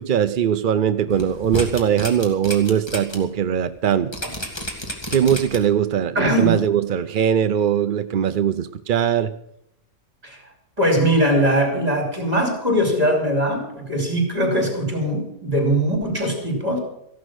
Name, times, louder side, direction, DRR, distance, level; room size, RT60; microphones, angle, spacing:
voice 1, 0.0-4.1 5.1-9.3, right 9 dB, 60° right, 11 dB, 0.5 m, -20 dB
sound 1, 1.1-3.2 3.5-3.7 4.1-5.8 6.2-6.3, equal, 15° left, 2.4 m, -30 dB
voice 2, 6.1-6.6 10.2-10.4 10.8-16.8, right 1 dB, 25° right, 1 dB, 4.5 m, -21 dB
15.0 x 11.5 x 6.4 m, 0.81 s
omnidirectional pair, 1.6 m